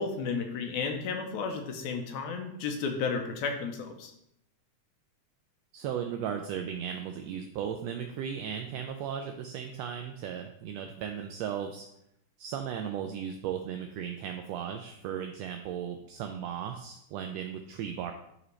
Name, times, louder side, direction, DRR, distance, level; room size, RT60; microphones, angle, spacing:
voice 1, 0.0-4.1, left 5 dB, 80° left, 4 dB, 2.1 m, -33 dB
voice 2, 5.7-11.8 12.4-18.1, right 8 dB, 80° right, 5 dB, 1.5 m, -36 dB
11.0 x 4.0 x 3.2 m, 0.77 s
omnidirectional pair, 3.4 m